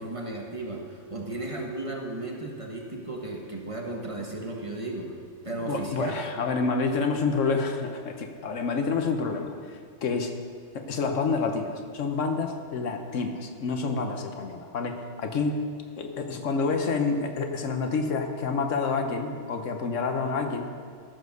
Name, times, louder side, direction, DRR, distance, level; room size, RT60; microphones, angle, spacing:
voice 1, 0.0-5.1 5.4-6.2, right 2 dB, 25° right, 0 dB, 1.3 m, -35 dB
voice 2, 5.5-10.3 10.7-15.7 16.0-20.7, left 4 dB, 85° left, 5 dB, 1.4 m, -28 dB
14.5 x 6.0 x 6.6 m, 2.1 s
omnidirectional pair, 1.3 m